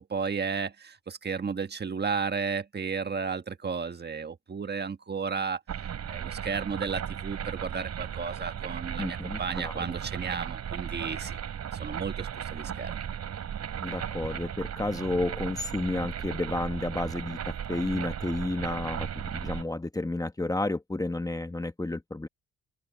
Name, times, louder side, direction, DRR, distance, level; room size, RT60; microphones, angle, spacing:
voice 1, 0.0-5.6 6.1-11.4 11.7-13.0, right 5 dB, 35° right, 1.5 m, -33 dB
sound 1, 5.7-19.6, right 8 dB, 60° right, 7.5 m, -36 dB
voice 2, 9.0-9.7 13.8-17.4 17.7-22.3, left 2 dB, 10° left, 1.3 m, -31 dB
open air
cardioid pair, 90°, 30 cm